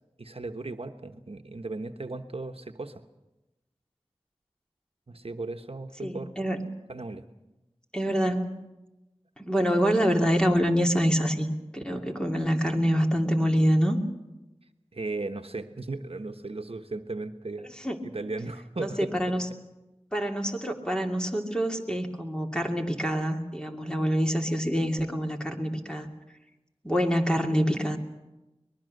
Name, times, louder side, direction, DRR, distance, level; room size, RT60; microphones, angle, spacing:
voice 1, 0.2-3.0 5.1-6.3 6.9-7.2 14.9-17.7 18.0-19.1, right 3 dB, 65° right, 6 dB, 1.2 m, -36 dB
voice 2, 6.0-6.6 7.9-8.6 9.4-14.0 17.8-18.0 18.8-19.5 20.1-26.1 26.8-28.0, equal, 10° left, 2 dB, 2.7 m, -26 dB
23.5 x 20.5 x 6.6 m, 1.0 s
wide cardioid pair, 45°, 11 cm